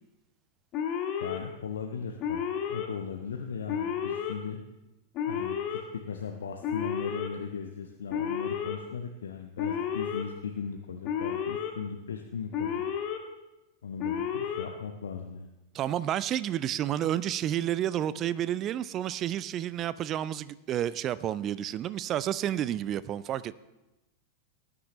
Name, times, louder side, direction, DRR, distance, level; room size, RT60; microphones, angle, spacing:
Alarm, 0.7-1.4 2.2-2.9 3.7-4.3 5.1-5.8 6.6-7.3 8.1-8.8 9.6-10.2 11.0-11.7 12.5-13.2 14.0-14.7, left 8 dB, 40° left, 1.5 m, -31 dB
voice 1, 1.2-4.6 5.3-12.8 13.8-15.5, left 6 dB, 65° left, 4 dB, 0.8 m, -38 dB
voice 2, 15.7-23.5, right 11 dB, 30° right, 17 dB, 0.4 m, -30 dB
19.0 x 9.8 x 3.1 m, 0.98 s
figure-of-eight pair, 90°, 0 cm